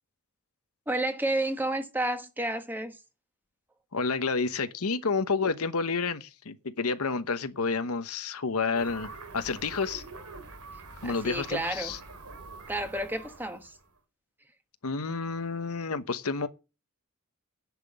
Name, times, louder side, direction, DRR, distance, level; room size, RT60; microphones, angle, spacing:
voice 1, 0.9-3.0 11.0-11.9 12.7-13.8, right 1 dB, 10° right, 1.3 m, -31 dB
voice 2, 3.9-10.0 11.0-12.0 14.8-16.5, left 4 dB, 75° left, 1.0 m, -30 dB
sound 1, 8.7-13.9, right 3 dB, 90° right, 3.0 m, -45 dB
10.5 x 5.9 x 8.7 m
head